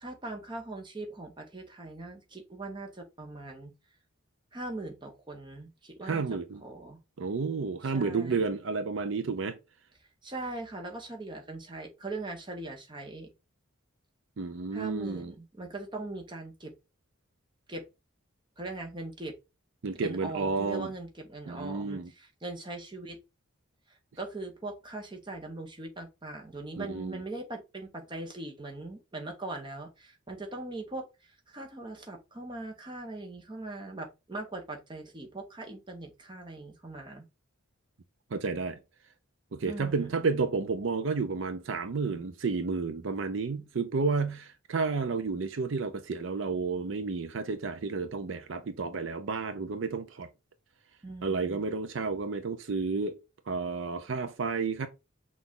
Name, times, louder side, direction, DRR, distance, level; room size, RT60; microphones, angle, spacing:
voice 1, 0.0-3.7 4.5-7.0 7.8-8.5 10.2-13.3 14.7-16.7 17.7-17.8 18.6-19.3 20.0-23.2 23.9-37.3 39.7-40.3 51.0-51.7, right 2 dB, 20° right, 0.9 m, -40 dB
voice 2, 6.0-6.6 7.2-9.6 14.4-15.3 19.8-20.9 21.5-22.1 26.8-27.2 38.3-38.8 39.5-50.3 51.2-53.2 53.5-54.9, right 4 dB, 65° right, 0.5 m, -31 dB
5.9 x 2.5 x 3.6 m
head